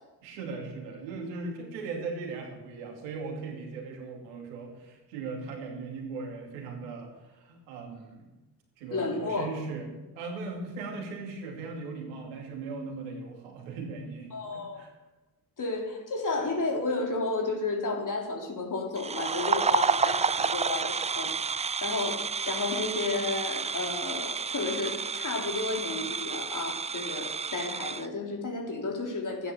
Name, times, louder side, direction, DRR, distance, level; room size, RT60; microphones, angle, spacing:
voice 1, 0.2-8.3 8.8-14.9, right 4 dB, 80° right, 1 dB, 2.7 m, -38 dB
voice 2, 8.9-9.5 14.3-14.8 15.6-29.5, left 3 dB, 40° left, 1 dB, 3.5 m, -32 dB
sound 1, 19.0-28.1, right 5 dB, 15° right, 0.4 m, -30 dB
12.5 x 10.0 x 6.9 m, 1.1 s
hypercardioid pair, 45°, 48 cm